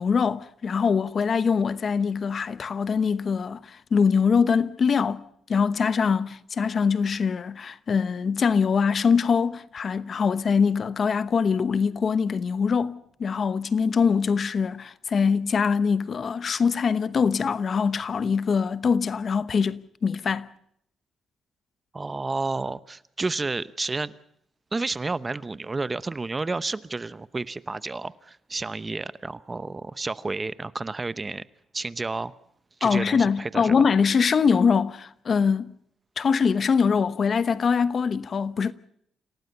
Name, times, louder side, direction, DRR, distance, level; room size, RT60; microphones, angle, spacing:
voice 1, 0.0-5.2 5.5-20.5 32.8-35.7 36.2-38.7, left 6 dB, 45° left, 1.0 m, -23 dB
voice 2, 21.9-24.1 24.7-31.4 31.7-32.3 32.8-33.8, right 3 dB, 25° right, 0.8 m, -31 dB
27.5 x 17.5 x 6.8 m
cardioid pair, 90°, 0 cm